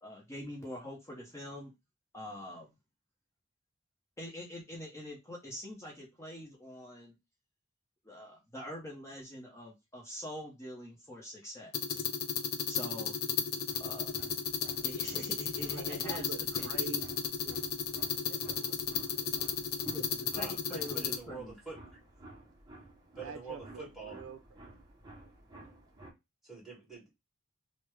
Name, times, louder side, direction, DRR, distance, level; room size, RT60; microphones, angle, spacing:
voice 1, 0.0-1.7 2.1-2.7 4.2-7.1 8.0-12.0 12.7-13.1 13.8-14.1 14.8-16.7 19.8-21.6, left 1 dB, 15° left, 0.7 m, -44 dB
sound 1, 11.7-21.2, left 7 dB, 50° left, 0.4 m, -34 dB
sound 2, 13.6-26.1, right 2 dB, 20° right, 0.8 m, -54 dB
voice 2, 15.7-17.8 18.2-19.9 23.2-24.8, right 4 dB, 75° right, 0.4 m, -47 dB
voice 3, 20.3-21.8 23.2-24.2 26.4-27.1, right 4 dB, ahead, 1.6 m, -45 dB
3.4 x 2.1 x 3.1 m
head